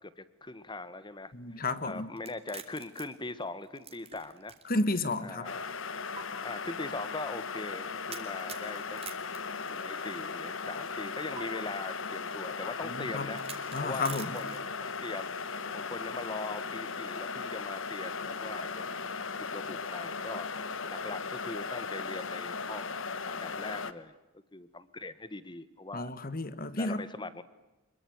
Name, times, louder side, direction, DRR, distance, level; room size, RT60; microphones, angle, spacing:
voice 1, 0.0-4.6 5.2-5.7 6.4-9.0 9.7-15.3 15.7-18.9 19.4-20.5 20.9-23.0 23.2-24.1 24.5-26.1 26.7-27.4, left 2 dB, 25° left, 14 dB, 1.5 m, -41 dB
voice 2, 1.3-2.1 4.7-5.5 12.9-13.3 13.7-14.4 25.9-27.0, left 2 dB, 45° left, 14 dB, 1.7 m, -32 dB
sound 1, 2.2-4.8 5.2-5.3 6.2-6.3 8.1-10.2 11.4-11.5 13.3-14.8, right 7 dB, 30° right, 3.0 m, -46 dB
sound 2, 5.4-23.9, left 5 dB, 65° left, 1.3 m, -37 dB
26.0 x 22.5 x 9.5 m, 1.0 s
head